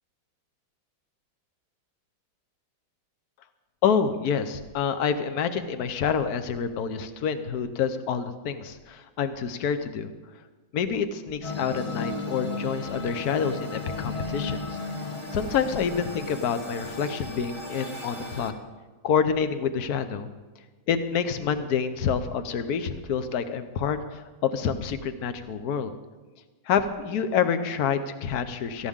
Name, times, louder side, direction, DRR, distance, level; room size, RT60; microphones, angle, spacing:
voice 1, 3.8-10.1 10.7-14.8 15.3-18.5 19.0-20.3 20.9-25.9 26.7-28.9, left 7 dB, 55° left, 10 dB, 1.3 m, -27 dB
sound 1, 11.4-18.5, left 3 dB, 20° left, 1.2 m, -35 dB
18.0 x 15.0 x 3.7 m, 1.3 s
omnidirectional pair, 2.2 m